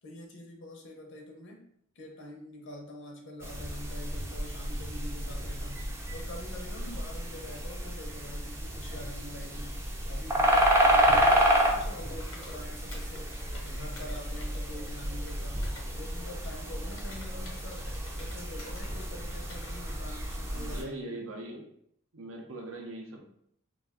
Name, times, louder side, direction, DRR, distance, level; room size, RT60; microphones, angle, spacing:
voice 1, 0.0-1.7 2.0-13.3 13.6-17.8 18.2-21.3, left 1 dB, 60° left, 1 dB, 0.5 m, -45 dB
sound 1, 3.4-20.8, equal, 10° right, 0.3 m, -30 dB
Computer keyboard, 10.8-12.6 12.9-15.9 16.3-18.9 19.3-20.0, left 2 dB, 90° left, 0.9 m, -51 dB
voice 2, 20.5-21.7 22.1-23.2, right 2 dB, 75° right, 2 dB, 0.5 m, -41 dB
2.3 x 2.2 x 3.4 m, 0.70 s
head